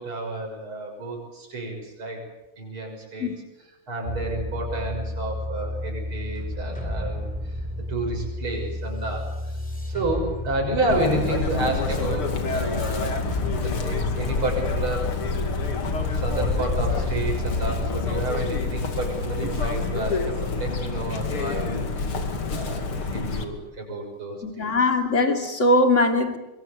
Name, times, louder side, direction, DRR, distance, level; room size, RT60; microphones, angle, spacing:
voice 1, 0.0-2.2 2.6-3.3 3.6-7.6 7.9-9.6 9.9-13.2 13.6-15.1 16.1-24.7, right 2 dB, 75° right, 2 dB, 7.4 m, -30 dB
sound 1, 4.1-18.3, left 1 dB, 5° left, 4.5 m, -32 dB
Chirp tweet, 10.9-23.4, left 4 dB, 85° left, 3.4 m, -27 dB
voice 2, 24.4-26.4, left 2 dB, 35° left, 4 dB, 3.1 m, -21 dB
25.5 x 23.5 x 8.2 m, 1.0 s
omnidirectional pair, 2.3 m